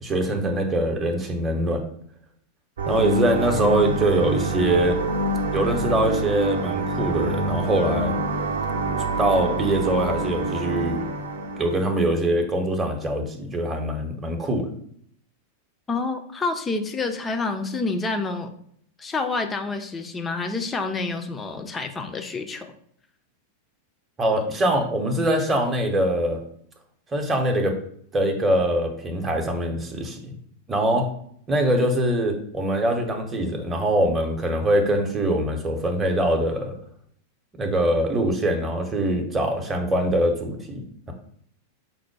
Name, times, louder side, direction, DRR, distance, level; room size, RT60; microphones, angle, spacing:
voice 1, 0.0-1.8 2.9-5.0 5.5-8.2 9.2-11.0 11.6-14.7 24.2-26.4 27.1-27.8 28.1-30.3 30.7-31.1 31.5-36.7 37.6-41.1, right 1 dB, 15° right, 3 dB, 0.8 m, -23 dB
sound 1, 2.8-11.8, right 2 dB, 65° right, 0.6 m, -26 dB
voice 2, 15.9-18.5 19.0-22.7, left 3 dB, 15° left, 6 dB, 0.5 m, -28 dB
5.4 x 2.1 x 4.6 m, 0.65 s
figure-of-eight pair, 90°, 0 cm